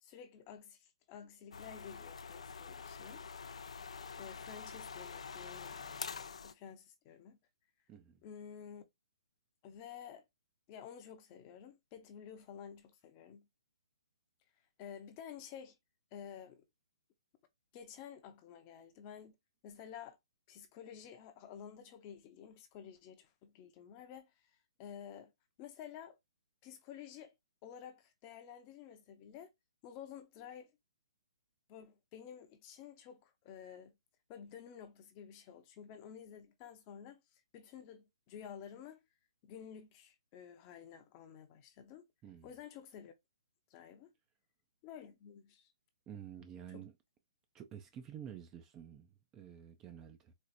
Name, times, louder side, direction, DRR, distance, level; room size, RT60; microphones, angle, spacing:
voice 1, 0.0-3.2 4.2-7.4 8.2-8.8 9.6-10.2 10.7-13.5 14.8-15.8 16.1-16.7 17.7-19.4 19.6-20.2 20.5-25.3 25.6-26.2 26.6-27.3 27.6-29.5 29.8-30.7 31.7-33.9 34.3-39.0 39.4-42.1 42.4-43.1 43.7-44.1 44.8-45.7 46.7-46.8, left 8 dB, 25° left, 0.7 m, -51 dB
sound 1, 1.5-6.5, left 5 dB, 85° left, 0.4 m, -46 dB
voice 2, 7.9-8.2 42.2-42.5 46.1-46.9 47.5-50.3, right 9 dB, 15° right, 0.4 m, -50 dB
4.3 x 2.5 x 2.5 m
hypercardioid pair, 165°, 3 cm